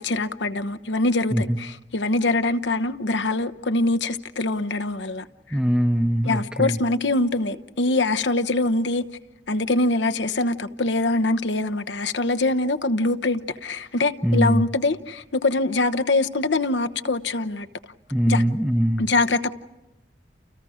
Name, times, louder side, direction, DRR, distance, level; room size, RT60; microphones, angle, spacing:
voice 1, 0.0-5.6 6.2-9.1 9.5-17.7 18.3-18.4 19.0-19.5, left 2 dB, 85° left, 1.0 m, -23 dB
voice 2, 5.5-6.8 14.2-14.6 18.1-19.1, equal, 5° right, 0.8 m, -21 dB
30.0 x 29.5 x 5.0 m
head